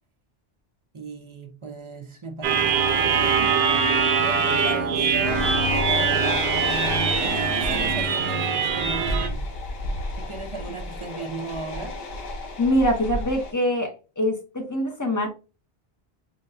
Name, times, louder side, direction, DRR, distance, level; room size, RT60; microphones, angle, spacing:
voice 1, 0.9-3.5 4.2-6.3 6.5-9.5 10.1-12.0, right 3 dB, 35° right, 0.6 m, -36 dB
sound 1, 2.4-9.3, right 5 dB, 75° right, 0.9 m, -22 dB
sound 2, 5.2-13.5, left 2 dB, 65° left, 1.1 m, -32 dB
voice 2, 12.6-15.3, equal, 20° left, 0.7 m, -24 dB
5.2 x 2.2 x 2.6 m
omnidirectional pair, 1.1 m